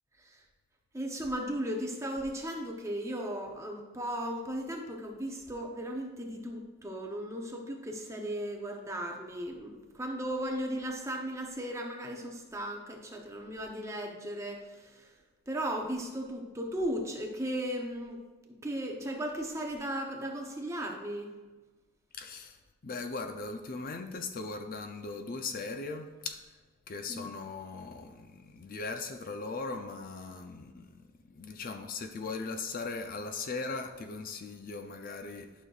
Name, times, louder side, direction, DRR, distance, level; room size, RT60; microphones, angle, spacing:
voice 1, 0.9-15.1 15.5-18.2 18.5-21.3 27.1-27.3, right 1 dB, 15° right, 2 dB, 0.7 m, -36 dB
voice 2, 22.2-26.5 26.9-31.0 31.3-35.6, left 3 dB, 40° left, 6 dB, 0.4 m, -39 dB
11.5 x 6.3 x 2.4 m, 1.3 s
head